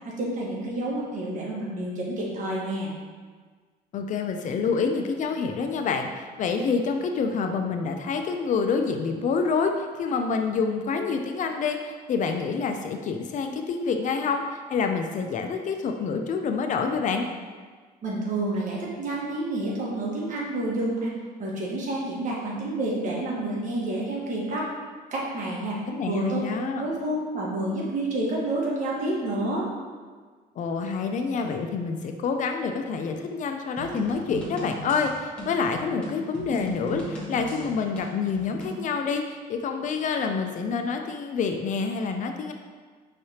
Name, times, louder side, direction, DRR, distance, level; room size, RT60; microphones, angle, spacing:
voice 1, 0.0-2.9 18.0-21.1 21.4-24.7 25.1-26.4 26.7-29.7, right 1 dB, 50° right, -4 dB, 1.3 m, -29 dB
voice 2, 3.9-17.3 25.9-26.8 30.6-42.5, left 5 dB, 50° left, 5 dB, 0.4 m, -27 dB
sound 1, 33.8-38.8, equal, 5° left, 1.2 m, -37 dB
5.5 x 3.3 x 2.8 m, 1.5 s
cardioid pair, 110°, 17 cm